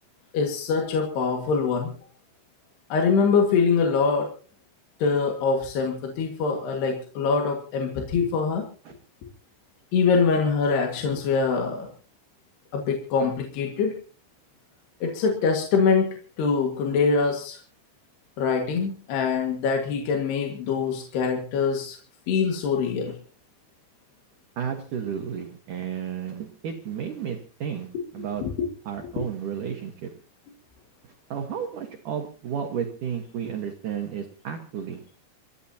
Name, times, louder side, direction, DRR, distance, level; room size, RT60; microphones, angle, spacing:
voice 1, 0.3-1.9 2.9-4.3 5.0-8.6 9.9-11.9 12.7-13.9 15.0-17.6 18.4-22.0 22.3-23.1 27.9-28.0 28.4-28.7 29.2-29.3, left 5 dB, 65° left, 2 dB, 3.8 m, -24 dB
voice 2, 24.6-28.4 28.9-30.1 31.3-35.0, right 8 dB, 65° right, 4 dB, 2.2 m, -32 dB
29.0 x 14.0 x 2.8 m, 0.38 s
omnidirectional pair, 5.3 m